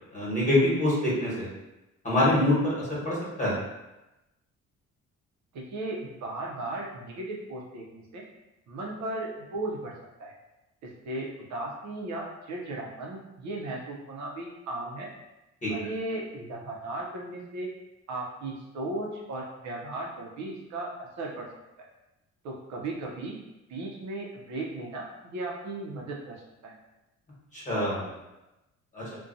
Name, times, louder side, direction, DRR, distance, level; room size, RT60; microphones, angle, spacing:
voice 1, 0.1-1.5 2.0-3.5 15.6-15.7 27.5-28.1 28.9-29.0, left 1 dB, 25° left, -7 dB, 1.2 m, -25 dB
voice 2, 5.5-8.2 8.7-9.9 10.2-10.3 10.8-15.1 15.7-17.7 18.1-21.5 22.4-23.4 23.7-26.7, right 2 dB, 65° right, -2 dB, 0.6 m, -36 dB
2.5 x 2.2 x 2.5 m, 0.97 s
cardioid pair, 90°, 30 cm